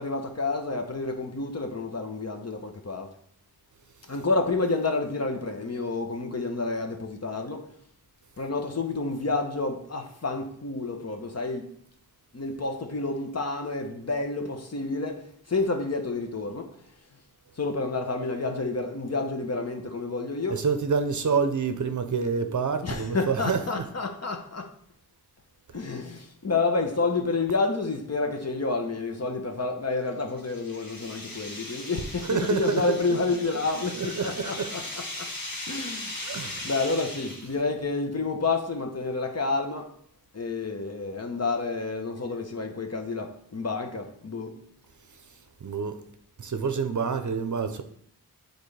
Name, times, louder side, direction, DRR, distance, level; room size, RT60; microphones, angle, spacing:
voice 1, 0.0-3.1 4.1-7.7 8.4-11.7 12.3-16.7 17.6-20.6 22.8-24.7 25.7-35.3 35.7-36.4 36.6-39.9 40.3-44.6, left 3 dB, 40° left, 0.9 m, -29 dB
voice 2, 20.5-23.8 32.2-33.0 33.9-34.7 36.2-36.7 45.6-46.0 46.4-47.8, right 5 dB, 50° right, 0.7 m, -27 dB
sound 1, 29.9-37.7, left 1 dB, 60° left, 1.6 m, -38 dB
9.2 x 4.0 x 3.3 m
wide cardioid pair, 90°, 39 cm